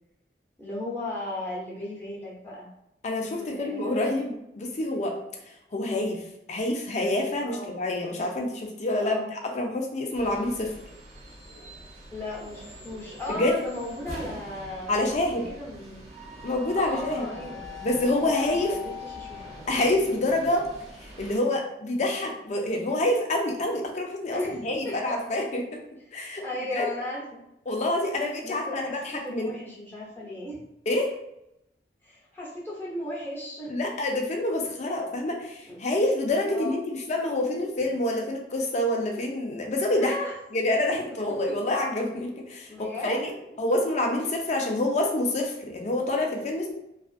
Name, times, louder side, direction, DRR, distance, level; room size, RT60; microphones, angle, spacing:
voice 1, 0.6-2.7 3.2-4.2 7.4-7.7 9.0-9.3 12.1-15.2 15.5-16.0 16.8-17.6 18.2-19.5 24.3-24.9 26.4-27.4 28.4-30.6 32.0-33.7 34.8-34.9 35.7-35.8 36.5-36.8 39.9-40.3 40.9-41.0 42.7-43.4, left 1 dB, 15° left, -6 dB, 0.8 m, -36 dB
voice 2, 3.0-5.2 5.7-6.2 6.5-10.7 13.3-13.5 14.9-15.5 16.4-17.3 17.8-18.7 19.7-20.7 21.0-25.8 26.1-26.4 26.7-26.9 27.7-29.5 30.9-31.1 33.7-40.1 40.5-43.3 43.6-46.7, left 1 dB, 40° left, 2 dB, 0.5 m, -27 dB
sound 1, 10.1-21.4, left 2 dB, 40° right, 0.6 m, -42 dB
2.4 x 2.4 x 2.4 m, 0.84 s
head